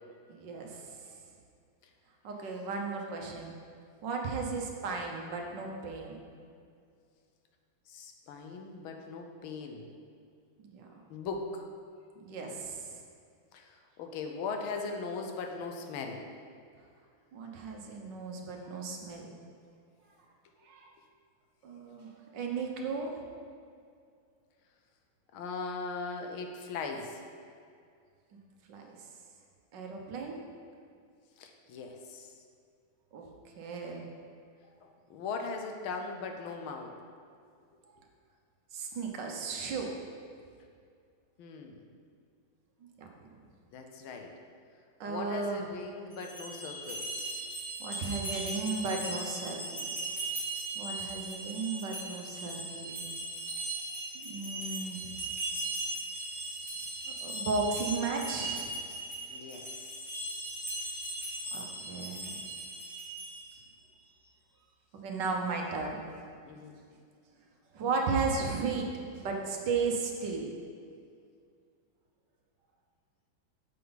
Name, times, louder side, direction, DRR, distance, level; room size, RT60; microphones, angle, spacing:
voice 1, 0.3-0.9 2.2-3.6 4.0-6.3 10.6-10.9 12.2-12.9 17.3-19.4 20.6-20.9 21.6-23.1 28.7-28.9 29.7-30.4 33.1-33.2 33.6-34.1 38.7-39.9 43.0-43.4 45.0-45.6 47.8-49.8 50.7-53.1 54.1-55.1 57.2-58.8 61.5-62.4 64.9-66.2 66.6-66.7 67.7-68.9 69.2-70.6, right 4 dB, 65° right, 1 dB, 1.5 m, -35 dB
voice 2, 7.9-9.8 11.1-11.6 13.5-16.3 25.3-27.2 31.4-32.3 35.1-36.9 41.4-41.8 43.7-44.3 45.1-47.1 59.3-60.2 66.4-66.8, left 4 dB, 90° left, 4 dB, 1.7 m, -39 dB
sound 1, 46.1-63.6, right 2 dB, ahead, 1.7 m, -38 dB
8.9 x 6.9 x 4.0 m, 2.3 s
omnidirectional pair, 2.2 m